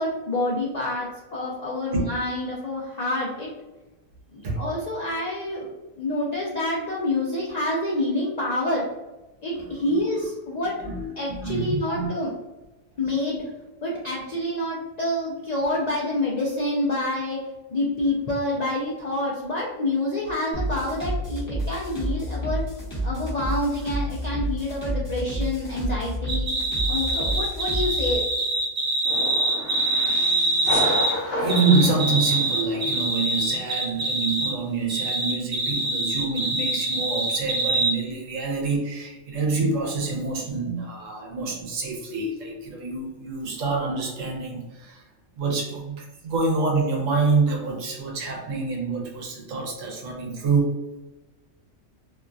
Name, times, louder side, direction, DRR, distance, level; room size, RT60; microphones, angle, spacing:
voice 1, 0.0-3.5 4.3-5.7 6.0-8.9 9.4-10.8 11.2-12.3 13.0-13.4 13.8-17.4 17.7-22.6 23.0-26.5 26.9-28.2, left 1 dB, 85° left, -4 dB, 0.3 m, -27 dB
voice 2, 10.8-12.1 31.0-45.0 45.4-50.8, right 4 dB, 80° right, 0 dB, 1.1 m, -26 dB
sound 1, 20.5-28.1, right 1 dB, 15° left, 0.8 m, -29 dB
sound 2, 26.3-31.1 31.5-34.5 34.9-37.9, right 2 dB, 35° right, 0.7 m, -24 dB
sound 3, 29.0-33.1, left 1 dB, 60° left, 0.8 m, -31 dB
2.8 x 2.3 x 2.5 m, 1.1 s
omnidirectional pair, 1.3 m